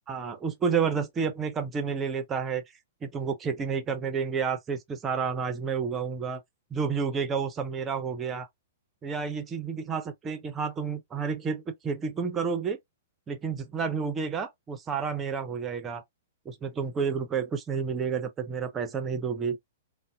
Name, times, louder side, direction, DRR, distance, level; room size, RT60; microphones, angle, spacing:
voice 1, 0.1-2.6 3.0-6.4 6.7-8.5 9.0-12.8 13.3-16.0 16.5-19.6, right 6 dB, 20° right, 0.6 m, -30 dB
3.8 x 2.1 x 2.3 m
figure-of-eight pair, 110°, 0 cm